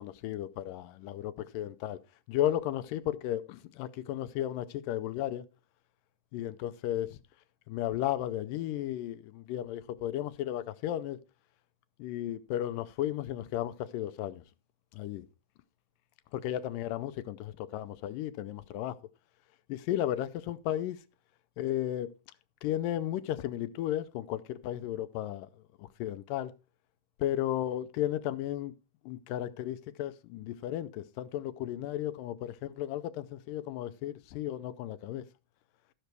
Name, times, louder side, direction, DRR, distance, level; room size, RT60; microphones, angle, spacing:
voice 1, 0.0-2.0 2.3-5.5 6.3-7.2 7.7-11.2 12.0-14.4 14.9-15.3 16.3-19.0 19.7-21.0 21.6-22.1 22.6-25.5 25.8-26.5 27.2-28.7 29.1-35.2, left 12 dB, 90° left, 2.4 m, -34 dB
13.0 x 6.8 x 4.5 m
omnidirectional pair, 3.8 m